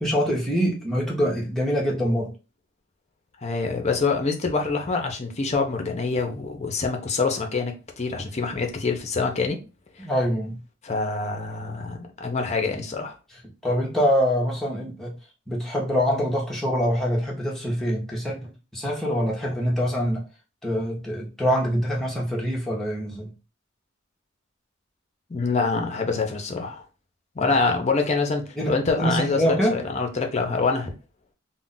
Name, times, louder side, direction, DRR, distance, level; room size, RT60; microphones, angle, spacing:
voice 1, 0.0-2.3 10.0-10.6 13.6-15.2 15.5-20.2 20.6-23.3 27.4-27.5 28.6-29.8, equal, ahead, 0.8 m, -25 dB
voice 2, 3.4-9.6 10.0-10.1 10.8-13.1 25.3-26.8 27.4-30.9, left 4 dB, 35° left, 0.6 m, -25 dB
2.4 x 2.1 x 3.8 m
head